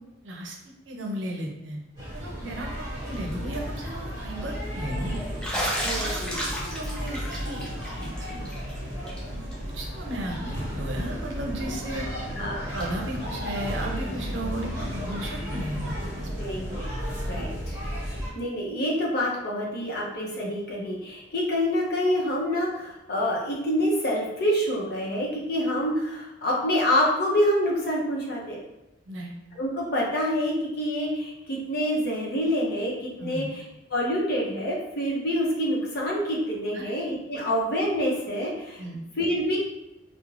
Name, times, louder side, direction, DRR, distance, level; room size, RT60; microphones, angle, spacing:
voice 1, 0.2-0.6 0.9-1.8 2.1-5.2 5.9-6.2 6.6-8.5 9.3-12.1 12.4-16.5 29.1-29.3 33.2-33.5 36.7-36.9 37.4-37.5 38.8-39.0, right 1 dB, 80° right, 0 dB, 0.6 m, -35 dB
sound 1, 2.0-18.3, equal, 20° right, 1.0 m, -33 dB
Bathtub (filling or washing), 3.1-3.5 3.9-4.0 5.4-8.7 9.1-9.2 9.5-9.6 11.0-11.1 12.8-12.9, equal, 5° left, 0.4 m, -33 dB
voice 2, 5.8-6.4 12.4-12.7 16.4-16.9 17.2-17.8 18.0-28.6 29.5-38.8 39.2-39.6, equal, 60° left, -2 dB, 0.6 m, -27 dB
2.4 x 2.0 x 3.1 m, 0.95 s
head